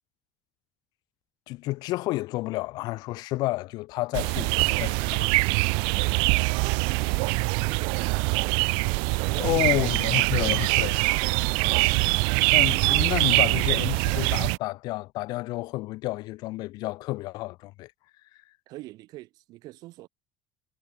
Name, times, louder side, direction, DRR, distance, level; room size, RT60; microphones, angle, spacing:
voice 1, 1.5-5.3 9.4-11.0 12.5-17.9, left 19 dB, 55° left, 2.6 m, -30 dB
sound 1, 4.1-14.6, right 34 dB, 80° right, 0.7 m, -23 dB
voice 2, 6.0-8.5 9.1-9.9 18.7-20.1, right 18 dB, 55° right, 5.4 m, -45 dB
cardioid pair, 180°, 8 cm